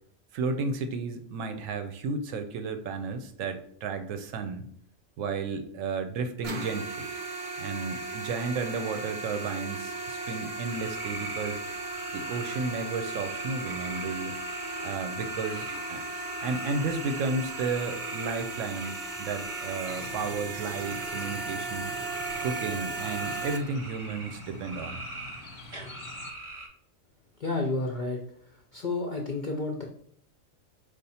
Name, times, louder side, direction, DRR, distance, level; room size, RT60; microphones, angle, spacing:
voice 1, 0.3-4.7 5.2-7.1 7.6-11.6 12.1-14.4 14.8-16.0 16.4-21.9 22.4-25.0, right 4 dB, 75° right, 8 dB, 0.9 m, -33 dB
sound 1, 6.4-23.6, right 3 dB, 55° right, 0.5 m, -36 dB
sound 2, 10.6-26.7, right 2 dB, 30° right, 0.8 m, -43 dB
sound 3, 19.9-26.3, left 2 dB, 90° left, 1.0 m, -47 dB
voice 2, 27.4-29.8, left 2 dB, 55° left, 1 dB, 0.5 m, -31 dB
5.0 x 2.4 x 4.1 m, 0.64 s
omnidirectional pair, 1.4 m